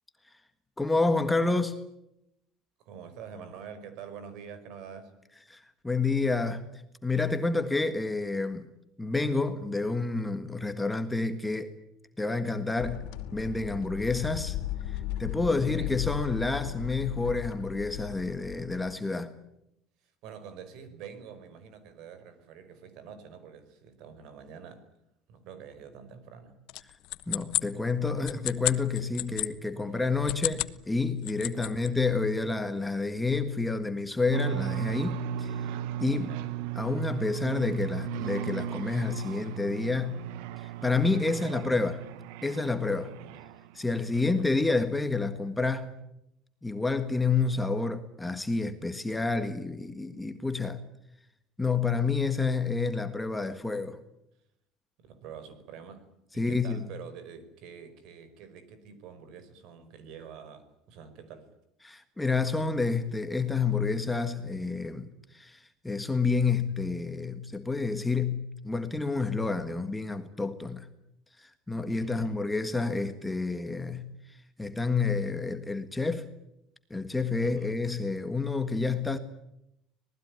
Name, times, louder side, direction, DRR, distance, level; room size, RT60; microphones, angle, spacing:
voice 1, 0.8-1.8 5.5-8.7 9.0-11.7 12.2-13.0 13.3-14.6 14.9-19.3 27.3-35.7 36.0-36.3 36.7-40.2 40.6-42.0 42.4-43.1 43.7-45.9 46.6-50.8 51.6-54.0 56.4-56.8 61.8-70.9 71.4-76.3 76.9-79.2, left 3 dB, 5° left, 1.6 m, -29 dB
voice 2, 2.8-5.1 15.6-15.9 20.0-24.8 25.3-26.6 29.9-30.0 31.5-32.0 36.1-36.5 41.3-41.8 43.2-43.5 44.1-44.5 55.0-61.5 72.0-72.4 77.4-77.8, right 7 dB, 60° right, 5.3 m, -47 dB
sound 1, 12.8-18.9, left 13 dB, 85° left, 2.8 m, -37 dB
sound 2, 26.7-29.5 30.1-30.8 31.1-31.9, left 19 dB, 60° left, 1.1 m, -32 dB
sound 3, 34.3-43.9, right 9 dB, 85° right, 1.3 m, -36 dB
26.0 x 19.5 x 9.6 m
cardioid pair, 155°, 0 cm